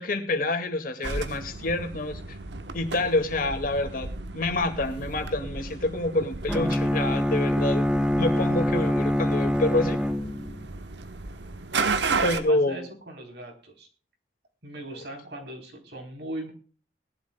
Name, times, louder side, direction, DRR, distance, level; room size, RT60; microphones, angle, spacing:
voice 1, 0.0-2.4 2.7-7.9 8.1-10.0 12.2-12.9, left 2 dB, 55° left, 6 dB, 2.2 m, -27 dB
sound 1, 1.0-12.4, right 4 dB, 85° right, 1.2 m, -34 dB
Bowed string instrument, 6.5-10.7, left 1 dB, 5° right, 1.0 m, -25 dB
voice 2, 12.2-13.9 14.6-16.5, right 1 dB, 65° right, 3 dB, 3.9 m, -39 dB
20.5 x 12.0 x 2.3 m, 0.39 s
head